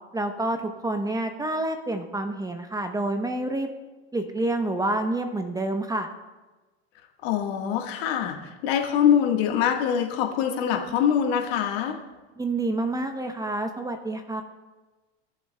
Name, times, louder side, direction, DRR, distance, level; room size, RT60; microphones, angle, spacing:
voice 1, 0.1-3.7 4.1-6.1 12.4-14.4, right 2 dB, 10° right, 6 dB, 0.8 m, -28 dB
voice 2, 7.2-12.0, left 9 dB, 65° left, 2 dB, 1.5 m, -24 dB
18.5 x 7.0 x 2.2 m, 1.2 s
supercardioid pair, 105°, 33 cm